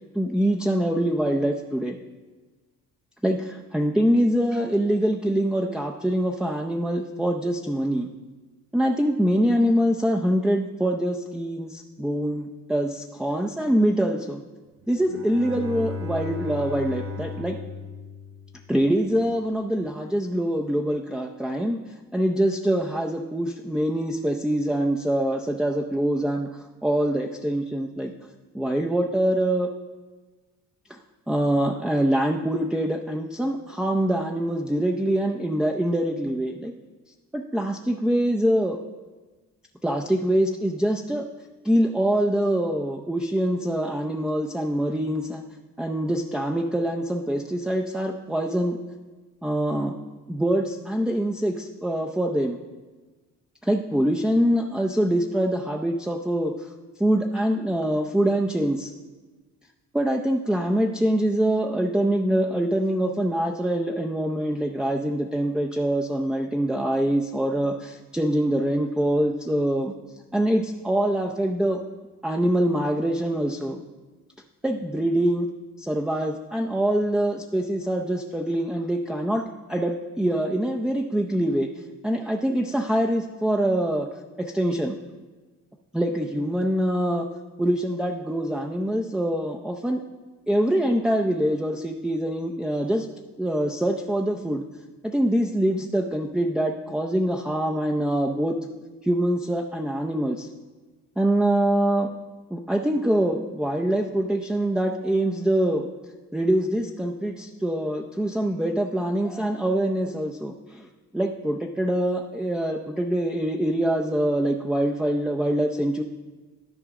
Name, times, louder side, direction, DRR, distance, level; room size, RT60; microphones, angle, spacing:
voice 1, 0.1-2.0 3.2-8.1 8.7-14.4 14.9-17.6 18.7-21.8 22.1-28.1 28.5-29.7 30.9-31.0 31.3-36.7 37.3-38.8 39.8-41.3 41.6-45.4 45.8-48.8 49.4-49.9 50.3-52.6 53.6-56.7 57.0-58.9 59.9-69.9 70.3-71.8 72.2-73.8 74.6-75.5 75.8-79.4 79.7-81.7 82.0-84.1 84.4-85.0 85.9-87.3 87.6-90.0 90.5-93.1 93.4-94.6 95.0-98.6 99.0-100.5 101.2-102.1 102.5-105.8 106.3-110.9 111.1-116.0, right 1 dB, 5° right, 1 dB, 0.5 m, -24 dB
Bowed string instrument, 14.9-19.0, left 2 dB, 45° right, 1.0 m, -35 dB
13.0 x 4.8 x 3.7 m, 1.3 s
cardioid pair, 90°, 30 cm